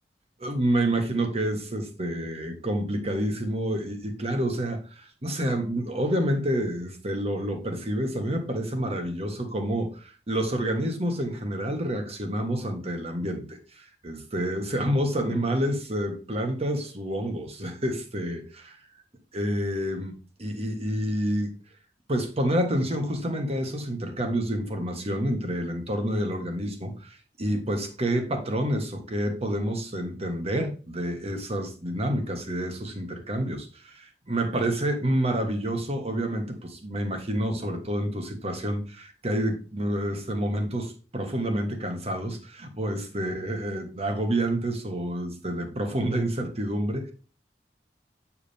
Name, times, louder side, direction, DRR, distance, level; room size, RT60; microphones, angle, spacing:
voice 1, 0.4-18.8 19.3-20.1 20.4-21.5 22.1-47.1, right 1 dB, 35° right, 1.5 m, -28 dB
8.5 x 4.9 x 3.4 m
head